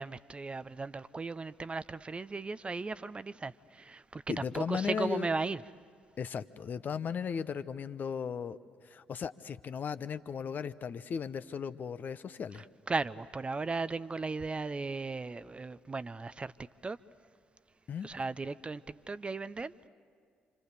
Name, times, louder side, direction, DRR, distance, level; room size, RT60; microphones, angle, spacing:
voice 1, 0.0-5.6 12.5-16.5 16.8-17.0 18.0-19.9, right 3 dB, 25° right, 0.7 m, -36 dB
voice 2, 4.3-5.3 6.2-12.6 17.9-18.1, left 6 dB, 45° left, 0.8 m, -36 dB
27.5 x 27.5 x 6.9 m
figure-of-eight pair, 45°, 4 cm